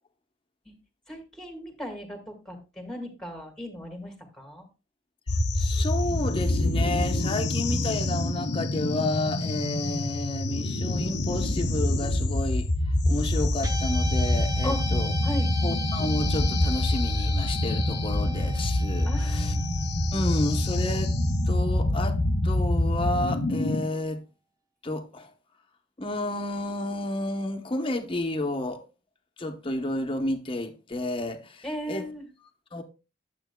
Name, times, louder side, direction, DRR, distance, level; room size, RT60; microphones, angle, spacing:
voice 1, 1.1-4.7 14.6-14.8 15.2-15.5 19.1-19.6 31.6-32.3, equal, 5° left, 1.7 m, -37 dB
sound 1, 5.3-23.8, left 1 dB, 55° left, 0.8 m, -26 dB
voice 2, 5.5-12.7 13.1-15.1 15.6-19.6 20.1-21.1 21.5-22.2 22.4-24.2 24.8-25.3 26.0-28.8 29.4-32.1 32.7-32.8, left 1 dB, 25° left, 0.9 m, -31 dB
Guitar, 13.6-22.1, right 2 dB, 20° right, 0.7 m, -40 dB
11.5 x 7.5 x 2.2 m
head